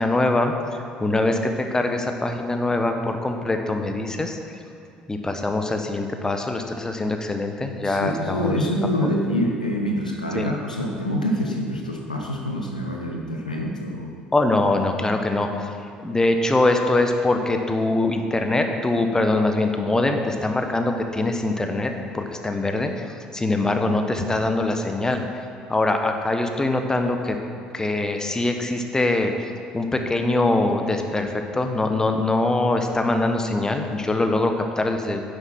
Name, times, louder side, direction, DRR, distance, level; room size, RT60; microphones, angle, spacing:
voice 1, 0.0-4.6 5.1-8.5 10.3-10.5 14.3-15.7 16.0-23.1 23.3-25.2 25.7-27.4 27.7-35.2, left 2 dB, 15° left, 5 dB, 1.1 m, -23 dB
voice 2, 7.8-14.1, equal, 85° left, 0 dB, 1.0 m, -26 dB
10.0 x 8.1 x 6.0 m, 2.4 s
figure-of-eight pair, 55°, 4 cm